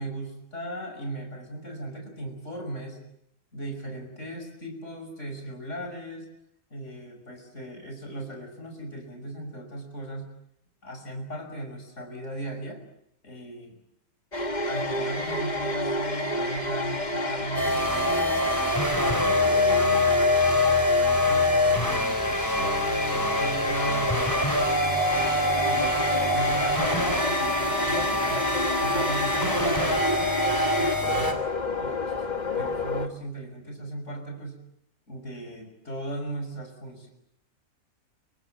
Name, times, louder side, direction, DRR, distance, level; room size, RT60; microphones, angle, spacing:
voice 1, 0.0-3.0 3.5-6.3 6.7-10.3 10.8-12.8 13.2-13.8 14.6-18.5 19.0-20.2 20.9-24.1 24.8-28.4 28.8-30.4 30.7-31.4 31.7-32.3 32.5-34.6 35.1-37.1, right 1 dB, 65° left, 4 dB, 6.3 m, -37 dB
sound 1, 14.3-33.1, left 2 dB, 30° left, 2.1 m, -29 dB
sound 2, 17.5-31.3, left 1 dB, 15° left, 3.8 m, -25 dB
28.5 x 26.0 x 7.7 m, 0.74 s
omnidirectional pair, 1.4 m